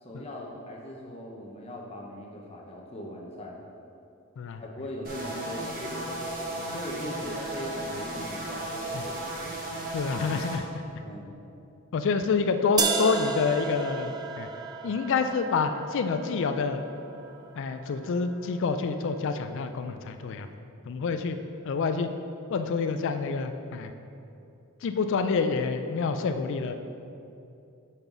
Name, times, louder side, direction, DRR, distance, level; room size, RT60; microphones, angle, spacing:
voice 1, 0.0-3.6 4.6-9.7 11.0-11.3 21.0-21.2, equal, 30° left, -1 dB, 0.7 m, -40 dB
sound 1, 5.0-10.6, right 1 dB, 45° right, 1.2 m, -35 dB
voice 2, 9.9-10.8 11.9-14.1 14.4-14.5 14.8-16.8 17.6-20.5 20.9-21.4 21.6-22.1 22.5-23.9 24.8-26.7, left 5 dB, 60° left, 8 dB, 0.4 m, -27 dB
sound 2, 12.8-18.7, right 4 dB, 20° right, 0.3 m, -34 dB
5.7 x 5.3 x 4.6 m, 2.7 s
head